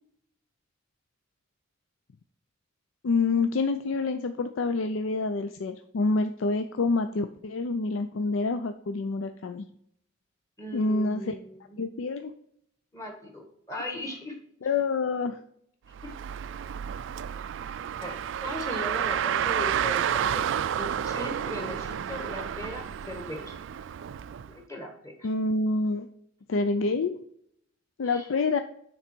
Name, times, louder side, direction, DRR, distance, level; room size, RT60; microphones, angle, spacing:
voice 1, 3.0-9.7 10.7-11.3 11.8-12.3 14.6-15.4 25.2-26.1 26.5-27.2 28.0-28.6, left 3 dB, 80° left, 9 dB, 0.4 m, -27 dB
voice 2, 10.6-11.8 12.9-14.3 16.0-16.1 18.0-20.4 20.8-23.5 24.7-25.3 28.0-28.3, left 1 dB, 15° left, 2 dB, 1.4 m, -38 dB
Car, 15.9-24.5, right 9 dB, 65° right, 0.3 m, -30 dB
9.3 x 3.9 x 4.4 m, 0.70 s
head